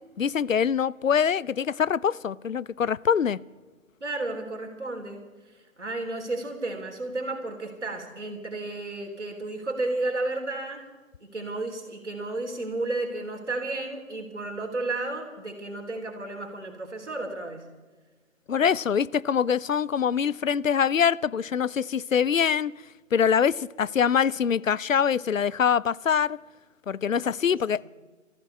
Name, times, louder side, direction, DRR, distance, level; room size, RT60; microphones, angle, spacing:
voice 1, 0.2-3.4 18.5-22.7 23.1-26.4 26.9-27.9, left 7 dB, 75° left, 0.6 m, -24 dB
voice 2, 4.0-10.8 11.2-17.7 27.4-27.6 27.8-27.9, right 2 dB, 60° right, 3.4 m, -33 dB
26.5 x 15.0 x 3.3 m
figure-of-eight pair, 165°, 40 cm